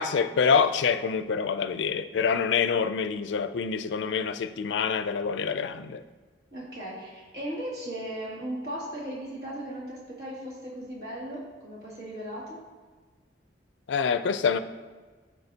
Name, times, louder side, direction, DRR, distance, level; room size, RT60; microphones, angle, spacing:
voice 1, 0.0-6.0 13.9-14.6, left 6 dB, 85° left, 0.4 m, -26 dB
voice 2, 6.5-12.6, right 1 dB, 60° right, 2.4 m, -37 dB
13.0 x 4.6 x 2.8 m
head